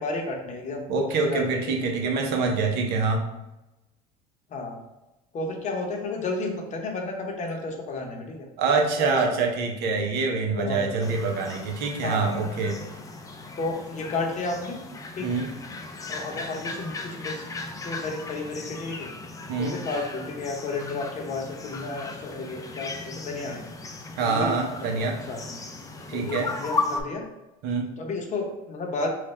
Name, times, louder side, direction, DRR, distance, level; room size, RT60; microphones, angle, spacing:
voice 1, 0.0-0.9 1.2-1.9 4.5-4.8 5.3-8.5 9.0-9.4 10.6-11.1 12.0-12.3 13.6-14.8 15.2-15.4 16.1-17.4 17.8-19.1 19.6-23.6 24.2-25.6 26.1-27.2 28.0-29.1, left 3 dB, 40° left, 2 dB, 0.9 m, -32 dB
voice 2, 0.9-3.2 8.6-12.8 15.2-15.5 19.5-19.8 24.2-25.2 26.1-26.5 27.6-27.9, right 4 dB, 65° right, 2 dB, 0.8 m, -25 dB
sound 1, 11.0-27.0, left 3 dB, 20° left, 0.4 m, -36 dB
3.2 x 2.4 x 4.3 m, 0.97 s
supercardioid pair, 100°, 18 cm